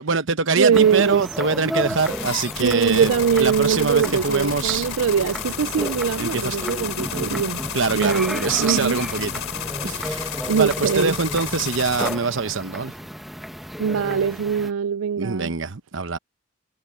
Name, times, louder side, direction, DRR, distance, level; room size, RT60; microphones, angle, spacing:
voice 1, 0.0-3.1 3.4-4.9 6.2-6.7 7.7-9.3 9.8-12.9 15.2-16.2, right 4 dB, 65° right, 1.0 m, -24 dB
voice 2, 0.5-1.3 2.6-7.6 7.9-9.0 10.5-11.1 13.8-15.5, right 7 dB, 90° right, 0.4 m, -22 dB
sound 1, 0.7-14.7, equal, ahead, 1.0 m, -32 dB
sound 2, 2.0-12.2, left 8 dB, 85° left, 3.3 m, -32 dB
head